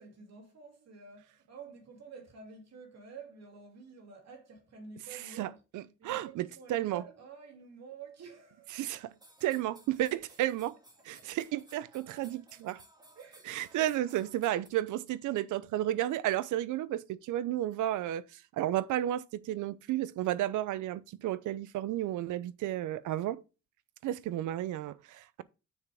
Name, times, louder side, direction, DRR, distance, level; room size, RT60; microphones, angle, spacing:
voice 1, 0.0-5.6 6.0-9.0 11.2-11.3 13.1-13.6, right 5 dB, 60° right, 2.8 m, -50 dB
voice 2, 5.1-5.5 5.7-7.0 8.7-9.1 9.4-10.8 11.0-12.8 13.5-23.4 24.0-25.4, right 13 dB, 80° right, 0.6 m, -32 dB
sound 1, 9.1-14.7, right 1 dB, 15° right, 1.9 m, -59 dB
7.2 x 6.5 x 3.5 m
cardioid pair, 90°, 30 cm